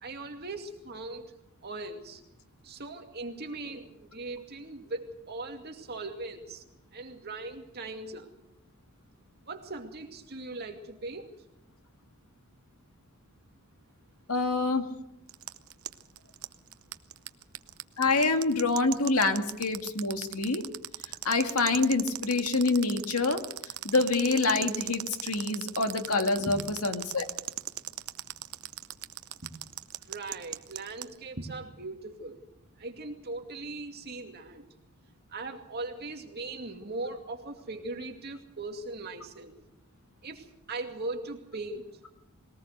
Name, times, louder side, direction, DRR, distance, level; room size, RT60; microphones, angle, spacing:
voice 1, 0.0-2.2 2.6-6.6 6.9-8.3 9.4-11.3 26.4-26.6 29.4-29.5 30.1-32.4 32.8-34.6 35.3-39.5 40.2-41.9, right 2 dB, 45° right, 3 dB, 2.4 m, -39 dB
voice 2, 14.3-14.8 18.0-20.6 21.2-23.4 23.8-27.2, left 3 dB, 85° left, 6 dB, 2.0 m, -26 dB
sound 1, 15.3-31.1, right 14 dB, 75° right, 0.8 m, -37 dB
21.5 x 18.5 x 6.6 m, 0.83 s
head